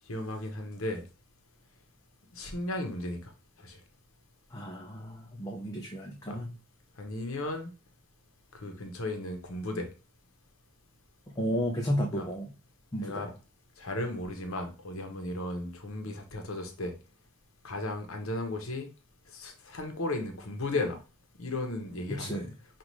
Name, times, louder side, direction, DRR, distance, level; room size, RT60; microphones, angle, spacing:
voice 1, 0.1-1.0 2.3-3.3 3.6-3.8 6.3-6.4 7.0-7.7 8.5-9.9 12.1-12.3 13.0-13.3 13.8-16.9 17.6-18.9 19.3-21.0 21.4-22.5, left 2 dB, 85° left, 4 dB, 0.9 m, -35 dB
voice 2, 4.5-6.5 11.4-12.5 12.9-13.3 22.1-22.5, equal, 20° left, -1 dB, 0.6 m, -33 dB
5.3 x 2.5 x 3.0 m, 0.32 s
head